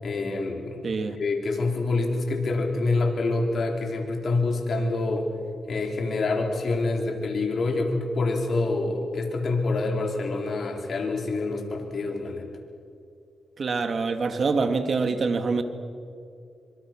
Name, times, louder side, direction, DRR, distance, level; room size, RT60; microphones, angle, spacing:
voice 1, 0.0-0.8 1.2-5.3 5.7-12.5, left 3 dB, 60° left, 2 dB, 4.3 m, -26 dB
voice 2, 0.8-1.2 13.6-15.6, right 4 dB, 55° right, 8 dB, 2.2 m, -25 dB
25.0 x 25.0 x 6.2 m, 2.5 s
cardioid pair, 85°, 0 cm